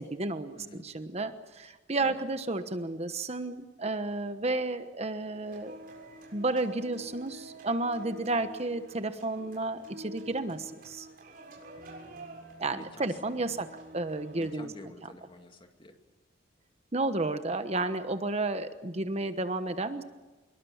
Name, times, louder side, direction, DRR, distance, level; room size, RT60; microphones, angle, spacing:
voice 1, 0.0-5.8 6.3-11.1 12.6-14.7 16.9-20.0, right 2 dB, 35° right, 9 dB, 1.1 m, -32 dB
sound 1, 5.4-14.5, right 2 dB, 50° right, 6.8 m, -48 dB
voice 2, 12.7-13.2 14.4-16.0, left 1 dB, 25° left, 5 dB, 2.5 m, -49 dB
26.0 x 22.5 x 7.3 m, 1.3 s
head